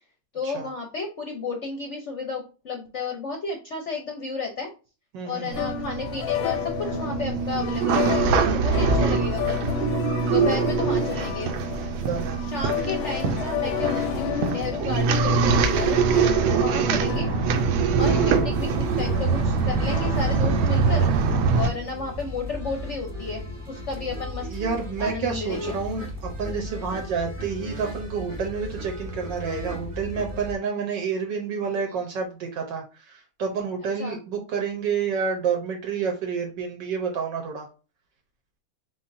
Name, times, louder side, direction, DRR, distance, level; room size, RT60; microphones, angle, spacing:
voice 1, 0.3-4.7 5.2-9.8 10.3-11.5 12.5-16.0 16.6-17.3 18.0-18.1 18.4-21.1 21.5-24.5 25.0-25.8 34.0-34.2, left 4 dB, 60° left, 2 dB, 0.7 m, -32 dB
voice 2, 5.1-5.7 12.0-12.4 16.7-17.0 24.5-37.7, right 6 dB, 70° right, 2 dB, 1.4 m, -29 dB
sound 1, 5.4-21.9, left 10 dB, 90° left, 1.4 m, -32 dB
sound 2, 5.5-21.7, right 5 dB, 85° right, 1.4 m, -23 dB
sound 3, 18.5-30.6, equal, 20° right, 0.9 m, -36 dB
4.4 x 3.9 x 2.6 m, 0.33 s
omnidirectional pair, 2.2 m